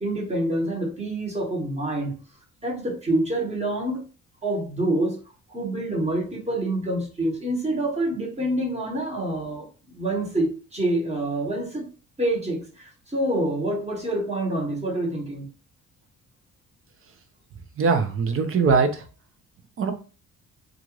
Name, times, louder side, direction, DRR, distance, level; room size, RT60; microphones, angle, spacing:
voice 1, 0.0-2.2 2.6-4.1 4.4-5.2 5.5-11.9 12.2-15.5, right 1 dB, 20° right, -2 dB, 1.3 m, -27 dB
voice 2, 17.8-19.0 19.8-19.9, right 5 dB, 45° right, 8 dB, 0.6 m, -21 dB
2.5 x 2.4 x 3.0 m, 0.35 s
cardioid pair, 90°, 30 cm